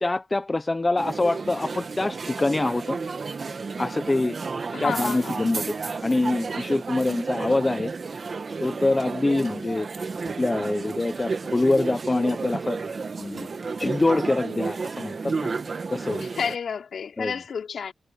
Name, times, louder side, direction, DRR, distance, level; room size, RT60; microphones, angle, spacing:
voice 1, 0.0-3.0 3.8-4.4 4.8-5.7 6.0-7.9 8.6-9.9 10.4-12.8 13.2-13.5 13.8-15.5 15.9-16.2 17.2-17.4, left 2 dB, 20° left, 0.8 m, -25 dB
sound 1, 1.0-16.6, right 4 dB, 45° right, 1.6 m, -32 dB
voice 2, 4.7-5.4 16.4-17.9, left 6 dB, 65° left, 4.6 m, -30 dB
cardioid pair, 105°, 0 cm